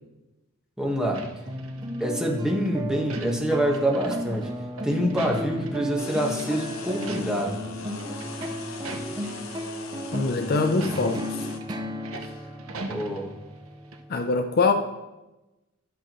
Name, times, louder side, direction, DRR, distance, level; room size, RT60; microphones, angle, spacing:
voice 1, 0.8-1.2 2.0-4.5 4.8-7.6 12.9-13.3, equal, 5° right, 1.3 m, -26 dB
sound 1, 1.1-2.3 2.7-6.1 6.3-6.5 6.9-7.6 7.8-9.6 10.0-10.2 10.7-13.7 13.9-14.0, right 3 dB, 80° right, 0.9 m, -40 dB
sound 2, 1.5-14.2, equal, 20° right, 0.6 m, -34 dB
sound 3, 6.0-11.6, left 3 dB, 70° left, 0.9 m, -39 dB
voice 2, 10.1-11.5 14.1-14.7, left 4 dB, 45° left, 0.5 m, -24 dB
12.0 x 6.1 x 3.0 m
head